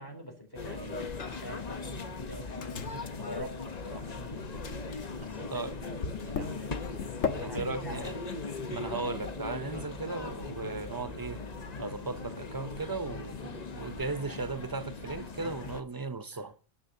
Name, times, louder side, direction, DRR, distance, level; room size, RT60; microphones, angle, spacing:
voice 1, 0.0-6.7 7.4-8.1 9.7-9.9 15.4-15.5 16.3-16.5, equal, 15° left, 3.5 m, -45 dB
sound 1, 0.5-15.8, left 4 dB, 35° left, 1.1 m, -39 dB
Microwave oven, 1.2-1.7 1.9-4.2 4.6-15.6, left 6 dB, 80° left, 1.6 m, -43 dB
sound 2, 2.4-8.4, left 1 dB, 60° left, 7.3 m, -59 dB
voice 2, 7.4-8.2 8.7-11.4 11.8-16.6, right 3 dB, 25° right, 0.5 m, -36 dB
29.5 x 9.9 x 2.8 m
omnidirectional pair, 1.3 m